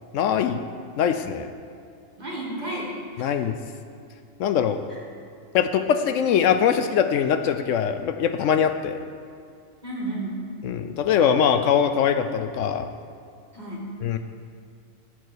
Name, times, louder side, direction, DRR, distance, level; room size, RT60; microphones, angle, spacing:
voice 1, 0.1-0.6 1.0-1.5 3.2-3.5 4.4-4.8 5.5-9.0 10.6-12.9 14.0-14.2, left 8 dB, 75° left, 9 dB, 0.9 m, -22 dB
voice 2, 2.2-3.3 4.9-5.0 9.8-10.4 13.5-13.9, right 1 dB, 35° right, -3 dB, 2.1 m, -32 dB
12.5 x 4.6 x 8.1 m, 2.3 s
omnidirectional pair, 1.3 m